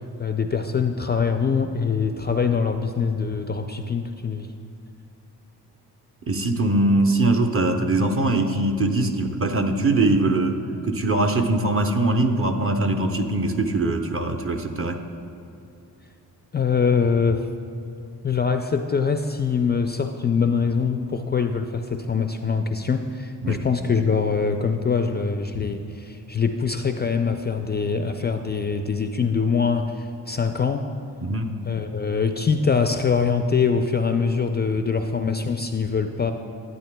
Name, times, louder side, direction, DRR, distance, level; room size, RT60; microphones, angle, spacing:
voice 1, 0.2-4.5 16.5-17.5 18.2-30.8 31.6-36.3, left 5 dB, 30° left, 6 dB, 0.3 m, -23 dB
voice 2, 6.3-10.6 10.8-15.0 23.4-23.6 31.2-31.5, right 2 dB, 35° right, 4 dB, 0.7 m, -22 dB
12.0 x 8.8 x 2.2 m, 2.7 s
cardioid pair, 70°, 37 cm